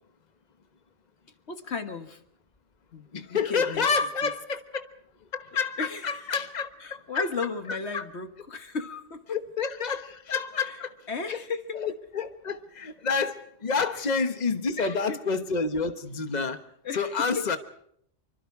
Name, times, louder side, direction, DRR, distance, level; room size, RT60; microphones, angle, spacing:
voice 1, 1.5-2.2 2.9-3.9 4.2-4.3 5.8-6.3 6.8-9.4 10.6-10.8 11.1-11.8 13.9-14.1 14.8-15.2 16.8-17.6, left 4 dB, 85° left, 8 dB, 1.9 m, -35 dB
voice 2, 3.1-4.8 5.3-7.3 7.9-8.0 9.6-10.9 11.3-11.4 11.7-16.6 16.9-17.6, left 5 dB, 40° left, 9 dB, 1.3 m, -29 dB
26.5 x 24.5 x 4.8 m, 0.69 s
omnidirectional pair, 1.1 m